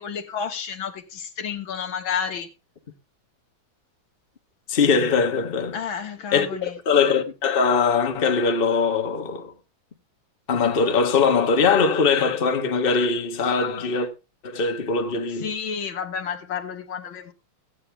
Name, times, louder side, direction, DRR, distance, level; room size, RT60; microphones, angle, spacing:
voice 1, 0.0-2.5 5.7-6.8 15.3-17.3, left 7 dB, 75° left, 2.1 m, -31 dB
voice 2, 4.7-5.8 6.3-9.5 10.5-14.1 14.4-15.5, left 5 dB, 30° left, 1.3 m, -21 dB
16.0 x 8.8 x 3.5 m
omnidirectional pair, 2.2 m